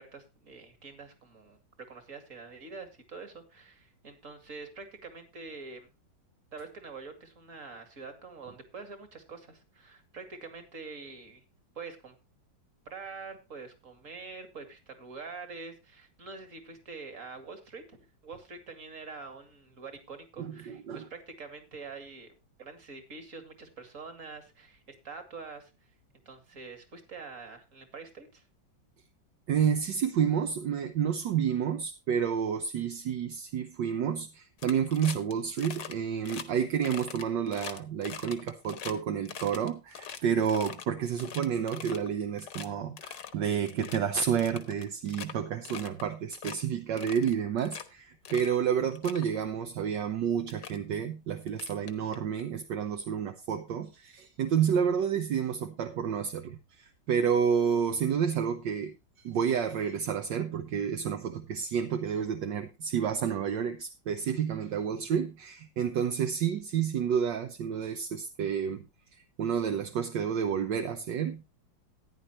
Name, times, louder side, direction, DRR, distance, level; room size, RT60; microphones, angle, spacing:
voice 1, 0.0-1.6 1.9-5.9 6.5-11.4 11.7-12.2 12.9-25.9 26.3-28.4, right 4 dB, 40° right, 2.4 m, -45 dB
voice 2, 20.4-21.1 29.5-68.8 69.1-71.4, right 7 dB, 70° right, 1.5 m, -30 dB
sound 1, 34.6-35.3 35.6-35.9 36.2-36.5 36.8-38.9 39.3-40.9 41.2-42.1 42.4-42.7 43.0-43.3 43.7-44.0 44.4-45.3 45.7-46.0 46.3-46.6 47.0-47.8 48.3-48.5 48.9-49.3 50.1-50.2 50.5-50.8 51.5-52.4, left 8 dB, 65° left, 1.8 m, -42 dB
14.5 x 10.0 x 3.0 m
omnidirectional pair, 2.1 m